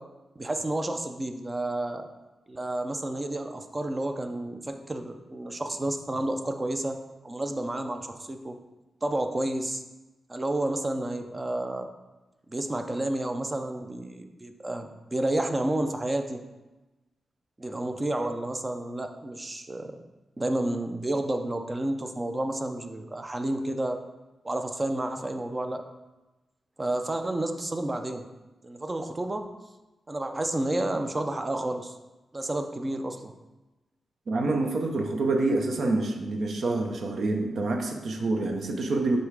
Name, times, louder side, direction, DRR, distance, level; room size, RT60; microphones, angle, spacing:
voice 1, 0.4-2.1 2.5-7.0 7.2-8.6 9.0-9.8 10.3-11.9 12.5-16.4 17.6-20.0 20.4-24.0 24.4-25.8 26.8-28.2 28.6-29.5 30.1-32.0 32.3-33.3, right 1 dB, 20° right, 6 dB, 0.5 m, -30 dB
voice 2, 34.3-39.2, right 2 dB, 60° right, 3 dB, 0.8 m, -27 dB
5.4 x 3.8 x 4.7 m, 1.1 s
wide cardioid pair, 130°, 0 cm